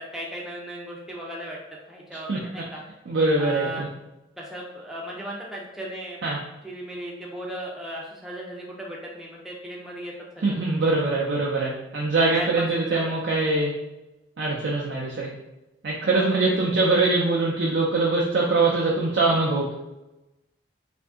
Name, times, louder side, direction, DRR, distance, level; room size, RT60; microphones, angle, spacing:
voice 1, 0.0-1.6 1.9-2.8 3.4-3.9 4.4-6.3 6.6-10.7 12.3-13.1 16.1-16.4, right 1 dB, ahead, -4 dB, 0.4 m, -36 dB
voice 2, 3.1-3.9 6.2-6.4 10.4-13.7 14.4-15.3 15.8-19.7, right 3 dB, 70° right, -4 dB, 0.5 m, -23 dB
2.6 x 2.5 x 3.5 m, 0.99 s
head